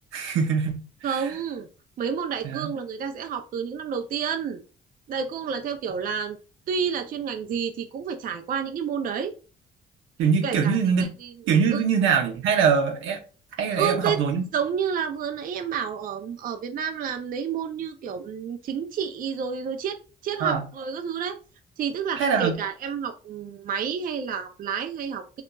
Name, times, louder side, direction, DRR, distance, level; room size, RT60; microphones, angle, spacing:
voice 1, 0.1-1.3 2.4-2.7 10.2-11.1 11.5-13.2 13.6-14.4 20.4-20.6 22.2-22.5, right 6 dB, 85° right, 0.6 m, -23 dB
voice 2, 1.0-1.7 2.0-4.6 5.1-6.4 6.7-9.3 10.4-11.3 11.7-11.8 13.7-14.2 14.5-20.0 20.2-21.4 21.8-25.4, right 7 dB, 45° right, 0.4 m, -30 dB
2.8 x 2.3 x 2.2 m
cardioid pair, 90°, 20 cm